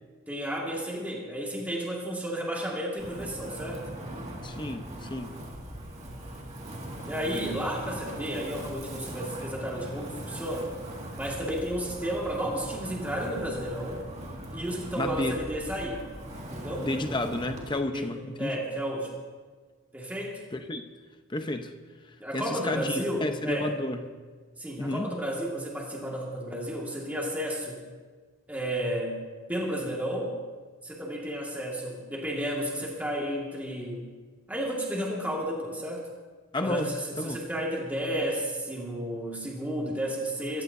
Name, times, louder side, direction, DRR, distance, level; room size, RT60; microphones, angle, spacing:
voice 1, 0.3-3.8 7.0-10.7 11.2-14.0 14.5-16.1 16.5-16.9 17.9-19.2 19.9-20.4 22.2-23.7 24.6-27.8 28.5-29.2 29.5-30.4 30.8-34.1 34.5-36.1 36.6-40.6, equal, 10° right, -3 dB, 2.0 m, -32 dB
Wind, 3.0-17.7, right 1 dB, 35° right, 2.1 m, -40 dB
voice 2, 4.4-5.4 15.0-15.4 16.8-18.6 20.5-20.8 21.3-21.7 22.0-24.0 24.8-25.1 36.5-36.9 37.2-37.4, left 1 dB, 20° left, 6 dB, 0.9 m, -31 dB
24.0 x 15.0 x 2.7 m, 1.5 s
head